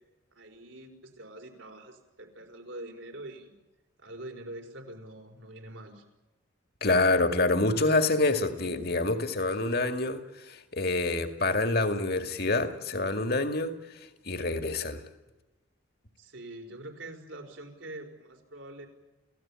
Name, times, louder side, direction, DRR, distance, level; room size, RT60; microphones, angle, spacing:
voice 1, 0.3-3.6 4.0-6.0 16.2-18.9, right 1 dB, 70° right, 4.9 m, -44 dB
voice 2, 6.8-14.0 14.2-15.0, left 2 dB, 50° left, 2.1 m, -27 dB
29.5 x 16.5 x 8.9 m
head